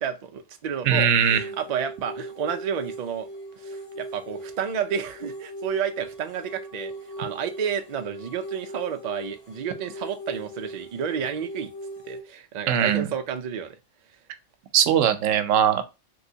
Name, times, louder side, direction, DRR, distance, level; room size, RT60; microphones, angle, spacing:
voice 1, 0.0-3.3 3.6-11.7 12.0-13.8, right 7 dB, 70° right, 0.4 m, -31 dB
voice 2, 0.8-1.4 12.7-13.1 14.7-15.8, right 8 dB, 90° right, 0.9 m, -20 dB
sound 1, 1.3-12.2, right 1 dB, 55° left, 1.7 m, -39 dB
3.1 x 3.0 x 2.7 m
omnidirectional pair, 1.3 m